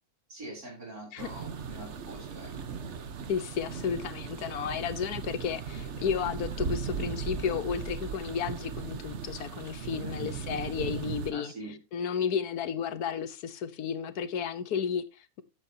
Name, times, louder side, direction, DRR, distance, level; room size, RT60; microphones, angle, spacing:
voice 1, 0.3-2.7 10.0-10.4 11.3-11.8, right 2 dB, 75° right, 4.6 m, -44 dB
sound 1, 1.2-11.3, right 6 dB, 55° right, 1.2 m, -37 dB
voice 2, 3.3-11.5 11.9-15.4, left 7 dB, 90° left, 1.4 m, -32 dB
13.0 x 8.9 x 2.8 m
omnidirectional pair, 1.6 m